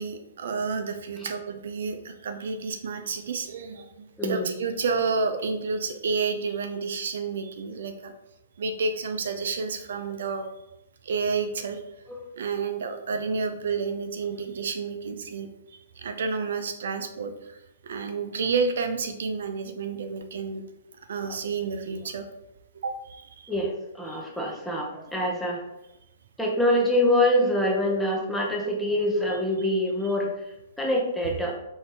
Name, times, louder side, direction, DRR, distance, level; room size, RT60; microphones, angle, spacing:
voice 1, 0.0-8.1 8.6-10.4 11.0-11.8 12.4-17.6 17.8-20.6 21.1-22.3 22.8-23.5 24.1-24.2 29.3-29.8, right 4 dB, 70° right, 7 dB, 0.5 m, -30 dB
voice 2, 23.5-25.6 26.4-30.3 30.8-31.6, left 1 dB, ahead, -2 dB, 0.7 m, -25 dB
4.5 x 3.3 x 2.9 m, 0.91 s
hypercardioid pair, 160°, 0 cm